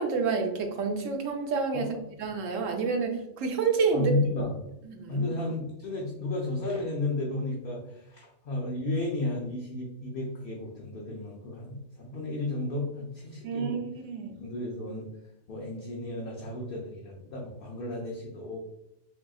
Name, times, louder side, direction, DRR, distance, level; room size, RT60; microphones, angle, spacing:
voice 1, 0.0-1.9 2.2-4.1 4.9-5.3 13.4-14.3, right 5 dB, 90° right, 3 dB, 1.0 m, -29 dB
voice 2, 3.9-4.5 5.1-13.8 14.4-15.1 15.5-18.6, left 2 dB, 60° left, -3 dB, 0.7 m, -33 dB
3.5 x 2.8 x 2.3 m, 0.85 s
omnidirectional pair, 1.3 m